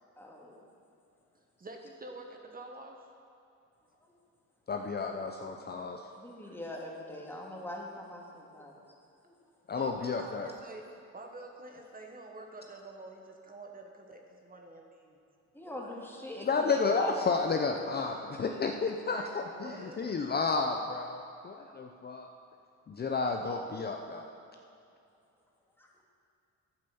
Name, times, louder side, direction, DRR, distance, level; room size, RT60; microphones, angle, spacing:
voice 1, 0.2-0.6 6.2-8.8 9.2-9.3 15.5-17.3 25.8-25.9, left 1 dB, 5° left, -2 dB, 2.1 m, -42 dB
voice 2, 1.6-3.1 9.7-10.9 11.1-15.2 15.6-16.0 19.0-20.1, right 2 dB, 30° right, 2 dB, 1.2 m, -47 dB
voice 3, 4.7-6.0 9.7-10.5 16.4-22.3 22.9-24.3, left 4 dB, 35° left, 4 dB, 0.7 m, -31 dB
8.9 x 8.9 x 7.0 m, 2.7 s
cardioid pair, 90°, 30 cm